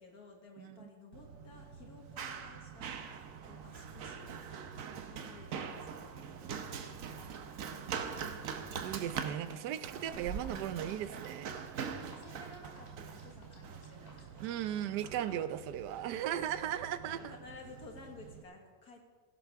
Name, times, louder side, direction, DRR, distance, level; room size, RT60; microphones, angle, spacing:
voice 1, 0.0-4.4 5.1-6.8 7.3-8.4 9.7-9.8 12.1-15.4 16.1-16.4 17.1-19.1, left 3 dB, 65° left, 1 dB, 2.2 m, -55 dB
voice 2, 0.6-0.9 8.8-11.5 14.4-17.4, right 10 dB, 80° right, 13 dB, 1.2 m, -37 dB
Run, 1.1-18.4, right 6 dB, 60° right, 1.1 m, -44 dB
sound 1, 10.3-15.3, left 2 dB, 40° left, 2.6 m, -58 dB
17.0 x 11.0 x 3.5 m, 1.4 s
omnidirectional pair, 1.8 m